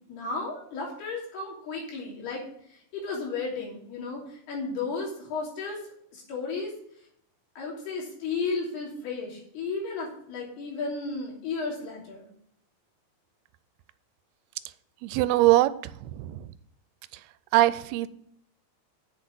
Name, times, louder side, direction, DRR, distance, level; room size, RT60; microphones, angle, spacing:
voice 1, 0.0-5.8 6.1-6.7 7.6-12.3, left 4 dB, 85° left, 5.1 m, -34 dB
voice 2, 15.0-16.4 17.5-18.1, right 16 dB, 90° right, 2.6 m, -22 dB
8.4 x 6.5 x 7.6 m
omnidirectional pair, 4.5 m